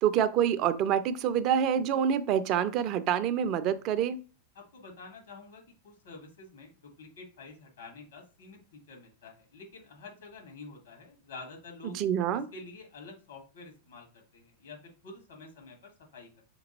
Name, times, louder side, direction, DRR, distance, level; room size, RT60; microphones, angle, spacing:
voice 1, 0.0-4.2 11.8-12.5, right 9 dB, 40° right, 13 dB, 0.4 m, -27 dB
voice 2, 4.5-12.0 12.5-16.4, left 3 dB, 65° left, 1 dB, 1.7 m, -48 dB
5.1 x 2.2 x 3.0 m, 0.35 s
figure-of-eight pair, 90°, 0 cm